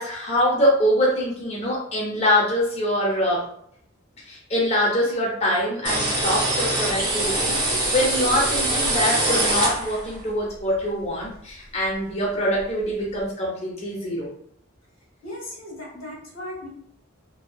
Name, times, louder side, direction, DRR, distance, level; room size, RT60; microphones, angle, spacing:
voice 1, 0.0-3.4 4.3-14.3, equal, 35° left, -4 dB, 0.6 m, -24 dB
sound 1, 5.8-10.2, right 2 dB, 20° right, 0.7 m, -23 dB
voice 2, 15.2-16.7, left 1 dB, 90° left, -4 dB, 1.4 m, -36 dB
2.6 x 2.2 x 2.3 m, 0.68 s
head